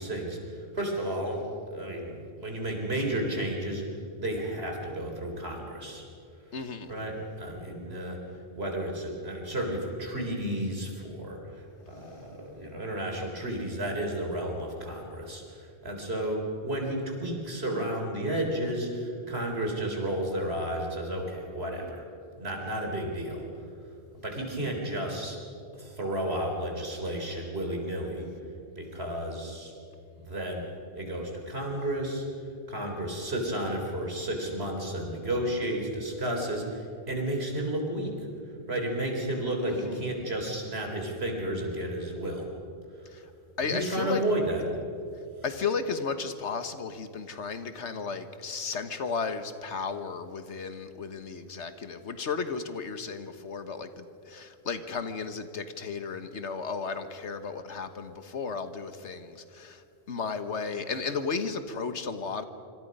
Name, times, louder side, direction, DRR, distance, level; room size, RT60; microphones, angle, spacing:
voice 1, 0.0-3.8 4.2-6.0 6.9-8.2 8.6-22.0 22.4-23.5 24.2-25.4 25.8-28.3 28.8-29.7 30.2-30.6 30.9-32.2 32.7-38.1 38.7-42.5 43.6-44.6, right 1 dB, 65° right, 1 dB, 4.2 m, -32 dB
voice 2, 6.5-6.9 39.7-40.1 43.1-43.2 43.6-44.2 45.4-59.8 60.1-62.4, left 5 dB, 90° left, 9 dB, 1.6 m, -34 dB
26.0 x 25.5 x 5.5 m, 2.6 s
omnidirectional pair, 1.1 m